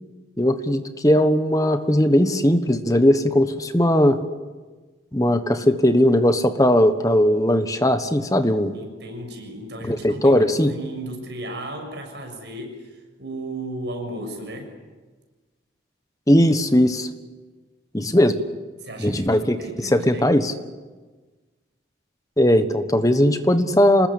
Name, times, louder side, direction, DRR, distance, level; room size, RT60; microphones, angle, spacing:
voice 1, 0.4-4.2 5.1-8.7 9.9-10.7 16.3-17.1 17.9-18.4 19.0-19.6 19.9-20.5 22.4-24.1, left 1 dB, 20° left, 9 dB, 1.3 m, -18 dB
voice 2, 8.7-14.7 18.8-20.4, right 1 dB, 65° right, 3 dB, 7.0 m, -35 dB
26.5 x 20.5 x 8.6 m, 1.3 s
head